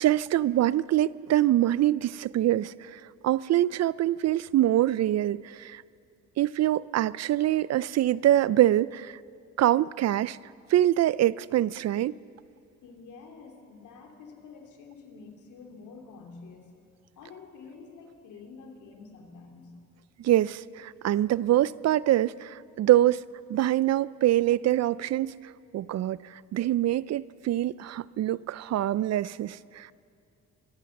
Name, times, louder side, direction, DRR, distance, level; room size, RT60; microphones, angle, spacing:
voice 1, 0.0-5.8 6.4-9.2 9.6-10.4 10.7-12.1 20.2-23.2 23.5-25.3 25.7-29.9, right 13 dB, 60° right, 20 dB, 0.5 m, -24 dB
voice 2, 12.8-16.7 17.2-19.8, left 4 dB, 80° left, 3 dB, 3.0 m, -48 dB
25.5 x 14.5 x 7.2 m, 2.4 s
cardioid pair, 90°, 30 cm